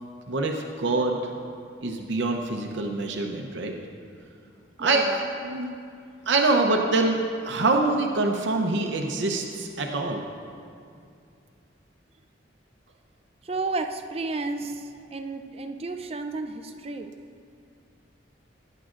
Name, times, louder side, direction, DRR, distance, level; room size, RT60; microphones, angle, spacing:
voice 1, 0.3-1.3 1.8-3.7 4.8-5.7 6.3-10.2, right 2 dB, 70° right, 1 dB, 0.7 m, -25 dB
voice 2, 4.8-5.3 13.4-17.1, right 3 dB, 30° right, 6 dB, 0.4 m, -32 dB
18.0 x 9.8 x 2.5 m, 2.4 s
head